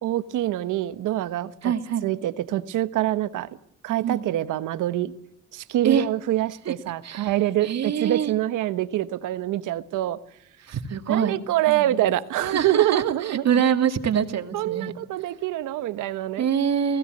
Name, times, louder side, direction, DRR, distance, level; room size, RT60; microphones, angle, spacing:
voice 1, 0.0-1.7 2.0-3.5 3.8-5.1 5.5-10.2 11.1-13.7 14.5-16.5, right 14 dB, 85° right, 13 dB, 1.3 m, -25 dB
voice 2, 1.6-2.1 4.0-4.2 5.8-6.1 6.7-6.8 7.0-7.3 7.6-8.3 10.6-11.4 11.7-12.1 12.4-14.9 16.4-17.0, right 8 dB, 60° right, 7 dB, 2.5 m, -25 dB
29.5 x 17.0 x 8.0 m, 0.73 s
cardioid pair, 90°, 30 cm